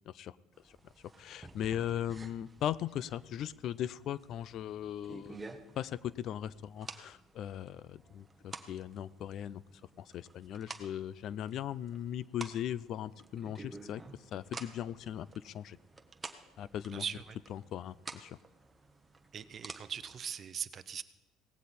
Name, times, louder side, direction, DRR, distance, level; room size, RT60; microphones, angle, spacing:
sound 1, 0.5-20.4, right 3 dB, 15° right, 1.1 m, -52 dB
voice 1, 1.2-5.4 5.8-9.6 10.0-14.0 14.3-15.8 16.6-17.0 17.5-18.4, left 10 dB, 55° left, 20 dB, 0.4 m, -38 dB
voice 2, 16.9-17.4 19.3-21.0, right 7 dB, 40° right, 13 dB, 0.8 m, -40 dB
17.5 x 15.0 x 4.3 m, 1.0 s
cardioid pair, 115°, 0 cm